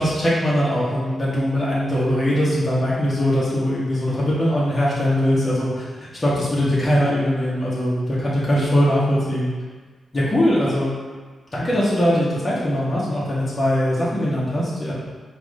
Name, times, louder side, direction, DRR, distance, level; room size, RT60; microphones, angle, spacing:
voice 1, 0.0-9.5 10.1-10.9 11.5-14.9, equal, 35° left, -8 dB, 1.4 m, -21 dB
4.7 x 2.6 x 3.7 m, 1.4 s
cardioid pair, 55°, 0 cm